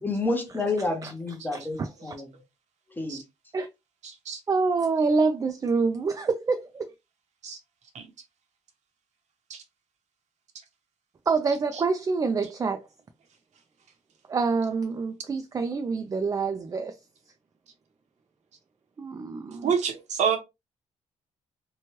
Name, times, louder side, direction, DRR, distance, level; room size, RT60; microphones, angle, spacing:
voice 1, 0.0-2.3 3.0-3.2, left 2 dB, 15° left, 0.7 m, -29 dB
voice 2, 1.5-2.1 3.5-3.7 4.5-6.9 11.3-12.8 14.3-17.0 19.0-19.7, right 4 dB, 30° right, 0.3 m, -26 dB
voice 3, 4.0-4.4 7.4-7.6 7.9-8.1 9.5-9.6 19.6-20.4, right 7 dB, 70° right, 0.8 m, -27 dB
2.9 x 2.2 x 2.9 m
cardioid pair, 130°, 12 cm